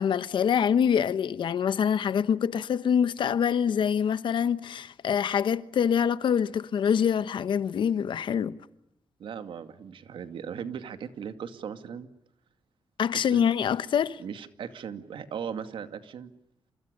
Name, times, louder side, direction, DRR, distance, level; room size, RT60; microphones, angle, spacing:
voice 1, 0.0-8.6 13.0-14.2, left 8 dB, 75° left, 1.1 m, -25 dB
voice 2, 9.2-12.1 13.1-13.4 14.2-16.3, right 7 dB, 85° right, 2.3 m, -38 dB
29.5 x 28.5 x 6.7 m
wide cardioid pair, 140°, 8 cm